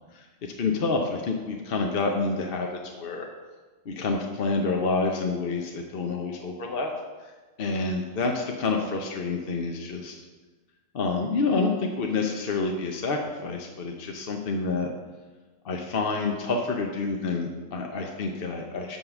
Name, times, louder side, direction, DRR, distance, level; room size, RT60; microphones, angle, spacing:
voice 1, 0.6-3.3 3.9-6.9 7.2-7.3 7.6-10.2 10.9-14.9 15.6-19.0, left 3 dB, 50° left, 2 dB, 0.8 m, -28 dB
8.1 x 5.5 x 5.9 m, 1.3 s
omnidirectional pair, 1.5 m